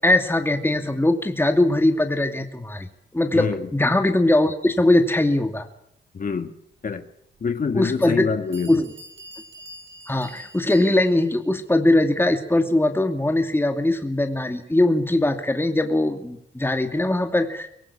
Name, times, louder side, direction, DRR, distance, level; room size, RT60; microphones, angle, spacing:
voice 1, 0.0-5.7 7.7-8.3 8.7-8.9 10.1-17.7, left 1 dB, 10° left, 5 dB, 2.5 m, -21 dB
voice 2, 3.3-3.7 6.1-6.5 6.8-7.1 7.4-8.8, left 5 dB, 50° left, 8 dB, 1.6 m, -26 dB
Bell, 7.3-7.4 8.1-8.2 8.5-11.3, right 1 dB, 80° right, 7.7 m, -44 dB
24.0 x 18.0 x 8.6 m, 0.71 s
cardioid pair, 70°, 19 cm